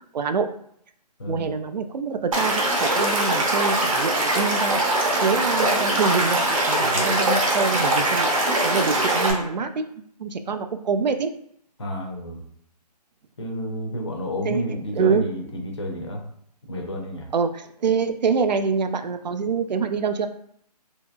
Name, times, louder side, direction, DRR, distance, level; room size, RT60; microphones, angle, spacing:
voice 1, 0.1-0.5 1.3-9.9 10.2-11.3 14.4-15.3 17.3-20.3, right 5 dB, 85° right, 8 dB, 0.4 m, -25 dB
Stream / Liquid, 2.3-9.3, right 1 dB, 50° right, 0.8 m, -22 dB
voice 2, 6.8-7.2 11.8-12.4 13.4-16.2 16.7-17.3, equal, 40° left, 1 dB, 0.5 m, -30 dB
2.8 x 2.7 x 2.2 m, 0.66 s
hypercardioid pair, 170°, 21 cm